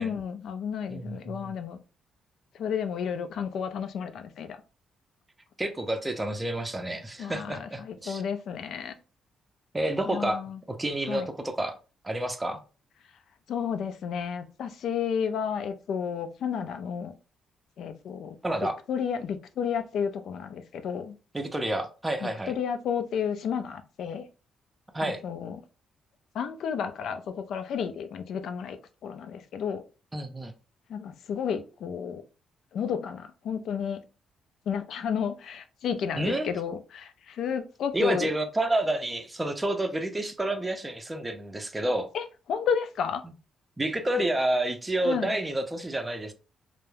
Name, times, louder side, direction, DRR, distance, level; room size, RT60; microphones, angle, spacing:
voice 1, 0.0-1.8 2.5-4.6 7.2-8.9 10.1-10.6 11.1-11.3 13.5-17.1 17.8-18.4 18.9-21.2 22.2-24.3 25.0-25.6 26.3-29.8 30.9-32.2 32.7-34.0 34.7-38.3 42.1-43.2 45.0-45.4, left 7 dB, 70° left, 0.4 m, -32 dB
voice 2, 0.9-1.6 5.6-8.2 9.7-10.4 10.7-11.8 12.0-12.6 18.4-18.7 21.3-22.5 24.9-25.2 30.1-30.5 36.1-36.5 37.9-42.1 43.8-46.3, right 1 dB, 15° right, 0.5 m, -29 dB
2.3 x 2.0 x 3.1 m
cardioid pair, 90°, 0 cm